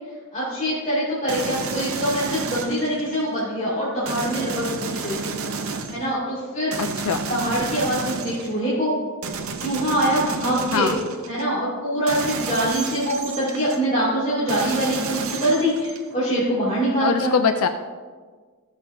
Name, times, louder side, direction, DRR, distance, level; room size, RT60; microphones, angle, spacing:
voice 1, 0.3-5.5 5.9-6.8 7.3-8.9 9.6-10.9 11.3-17.3, equal, 35° left, -10 dB, 2.5 m, -24 dB
sound 1, 1.3-3.3 4.1-6.1 6.7-8.6 9.2-11.5 12.1-13.8 14.5-16.1, right 4 dB, 65° right, 0.8 m, -31 dB
voice 2, 6.8-7.2 10.7-11.0 17.0-17.7, left 6 dB, 70° left, 8 dB, 0.5 m, -22 dB
15.5 x 6.9 x 2.7 m, 1.5 s
head